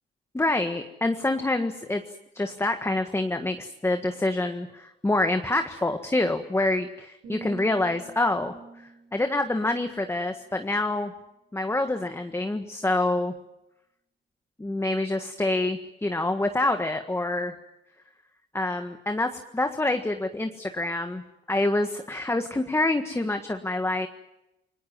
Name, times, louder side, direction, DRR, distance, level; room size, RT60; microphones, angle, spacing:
voice 1, 0.3-2.0 2.3-8.5 9.1-11.1 11.5-13.3 14.6-17.5 18.5-21.2 21.5-24.1, left 2 dB, 15° left, 6 dB, 1.6 m, -26 dB
sound 1, 7.2-11.1 11.6-11.9, right 4 dB, 70° right, 7.3 m, -47 dB
29.5 x 20.0 x 7.5 m, 0.90 s
cardioid pair, 90°, 20 cm